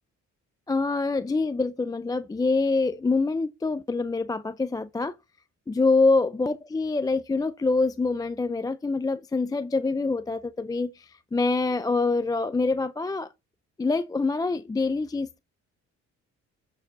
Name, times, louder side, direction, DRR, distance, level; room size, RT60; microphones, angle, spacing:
voice 1, 0.7-5.1 5.7-13.3 13.8-15.4, left 3 dB, 15° left, 0.3 m, -25 dB
8.3 x 4.7 x 3.9 m
cardioid pair, 90°, 30 cm